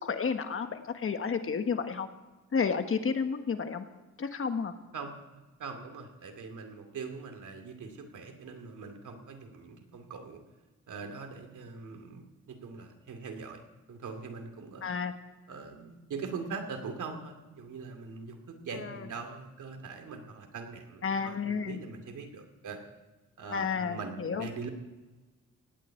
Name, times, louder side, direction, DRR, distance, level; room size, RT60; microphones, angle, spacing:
voice 1, 0.0-2.1 2.5-3.9 4.2-4.7 14.8-15.1 18.8-19.0 21.0-21.8 23.5-24.5, left 5 dB, 45° left, 7 dB, 1.3 m, -31 dB
voice 2, 4.9-10.4 10.9-13.6 13.9-15.0 15.5-22.8 23.4-24.7, right 4 dB, 85° right, 5 dB, 2.6 m, -42 dB
18.0 x 7.5 x 8.9 m, 1.2 s
wide cardioid pair, 135°, 30 cm